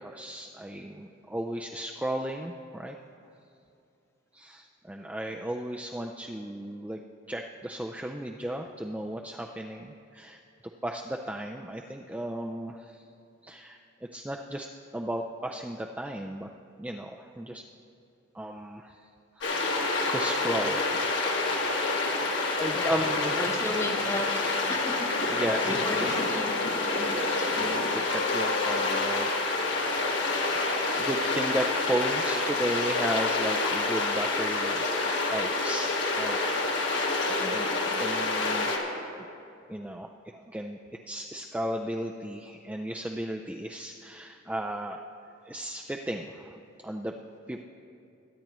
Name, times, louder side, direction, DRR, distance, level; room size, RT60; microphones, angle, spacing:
voice 1, 0.0-3.0 4.3-7.0 7.3-10.4 10.8-13.0 13.4-16.5 16.8-17.6 18.3-19.1 19.4-19.7 20.1-21.0 21.6-22.0 22.6-23.6 25.3-25.7 26.0-26.2 27.0-29.7 30.5-36.4 36.6-37.0 37.3-37.7 38.0-39.3 39.7-40.8 41.1-45.0 45.4-46.6 46.8-47.1 47.5-47.6, right 1 dB, 5° right, 1 dB, 0.3 m, -35 dB
sound 1, 19.4-38.8, left 3 dB, 70° left, 1.5 m, -27 dB
voice 2, 23.4-26.8 27.4-27.7 37.4-37.6, left 1 dB, 15° left, 3 dB, 0.9 m, -35 dB
22.0 x 9.3 x 3.0 m, 2.6 s
head